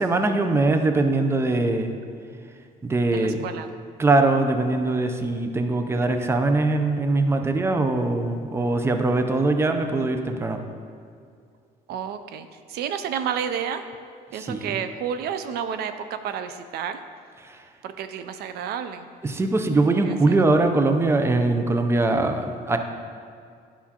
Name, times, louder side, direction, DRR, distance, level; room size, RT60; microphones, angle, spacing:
voice 1, 0.0-2.0 2.8-3.4 4.0-10.6 14.3-14.8 17.4-17.6 19.2-22.8, right 2 dB, 15° right, 6 dB, 0.5 m, -22 dB
voice 2, 3.1-3.7 11.9-13.8 14.3-17.0 17.8-19.1 20.0-20.1, right 8 dB, 70° right, 9 dB, 0.4 m, -30 dB
10.5 x 5.6 x 2.9 m, 2.3 s
cardioid pair, 110°, 17 cm